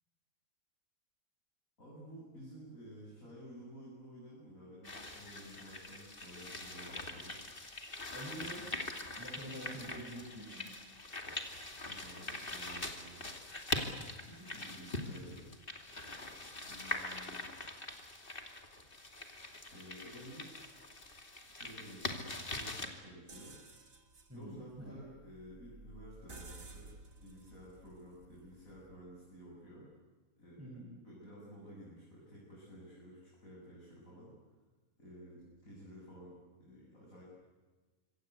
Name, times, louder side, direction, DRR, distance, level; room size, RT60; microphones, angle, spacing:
voice 1, 1.8-7.4 11.9-13.3 14.2-15.4 16.6-17.5 19.7-20.8 21.5-23.5 24.3-26.9 27.2-29.9 30.4-30.7 31.0-34.3 35.0-37.2, equal, 75° left, -5 dB, 8.5 m, -53 dB
sound 1, 4.8-22.9, left 2 dB, 40° left, 2.9 m, -43 dB
voice 2, 8.1-10.7 24.3-25.0 30.6-30.9, right 1 dB, 10° right, 0 dB, 4.9 m, -47 dB
sound 2, 23.3-29.1, right 3 dB, 75° right, 3.0 m, -55 dB
26.0 x 25.5 x 8.3 m, 1.3 s
omnidirectional pair, 1.4 m